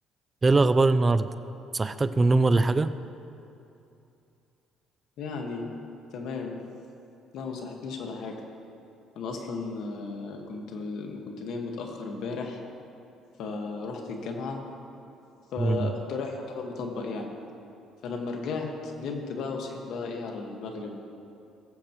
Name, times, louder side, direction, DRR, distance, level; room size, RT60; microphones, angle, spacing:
voice 1, 0.4-1.3 1.7-2.9 15.6-15.9, right 3 dB, 25° right, 12 dB, 0.4 m, -21 dB
voice 2, 5.2-5.7 6.1-6.6 7.3-8.4 9.1-12.6 13.4-14.6 15.5-17.3 18.0-18.7 19.0-21.1, left 4 dB, 70° left, 2 dB, 1.5 m, -34 dB
20.0 x 7.8 x 3.0 m, 2.7 s
cardioid pair, 90°, 0 cm